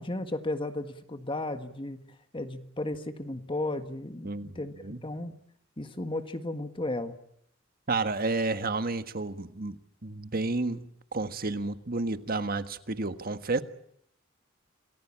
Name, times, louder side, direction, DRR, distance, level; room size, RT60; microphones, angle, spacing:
voice 1, 0.0-2.0 2.3-5.3 5.8-7.2, left 2 dB, 25° left, 8 dB, 1.7 m, -34 dB
voice 2, 7.9-13.6, right 3 dB, 50° right, 10 dB, 1.6 m, -31 dB
28.0 x 20.0 x 8.8 m, 0.70 s
head